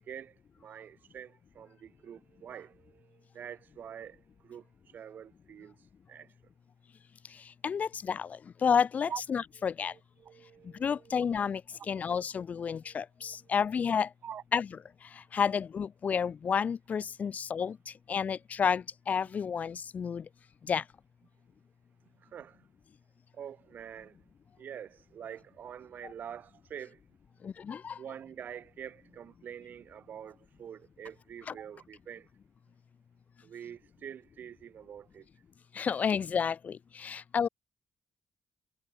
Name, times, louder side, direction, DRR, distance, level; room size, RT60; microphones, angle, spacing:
voice 1, 0.0-5.8 6.1-6.3 9.1-9.2 9.5-11.5 11.8-12.2 12.8-13.6 14.2-14.4 19.2-19.3 22.2-22.7 23.3-24.3 24.6-27.0 28.0-32.3 33.4-35.3, right 8 dB, 60° right, 1.6 m, -46 dB
voice 2, 7.6-9.9 10.8-11.6 11.9-14.1 14.5-14.6 15.1-17.8 18.1-20.3 20.7-20.8 27.4-28.0 35.7-37.5, left 6 dB, 50° left, 0.7 m, -30 dB
cardioid pair, 90°, 3 cm